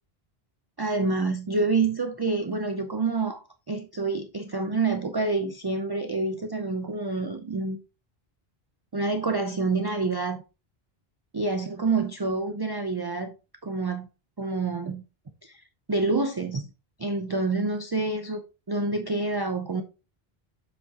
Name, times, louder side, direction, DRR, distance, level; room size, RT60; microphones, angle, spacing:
voice 1, 0.8-7.8 8.9-10.4 11.3-13.3 13.6-14.1 14.4-15.0 15.4-15.6 15.9-16.7 17.0-19.8, right 3 dB, 30° right, 0.5 m, -27 dB
7.4 x 6.2 x 2.8 m
omnidirectional pair, 1.0 m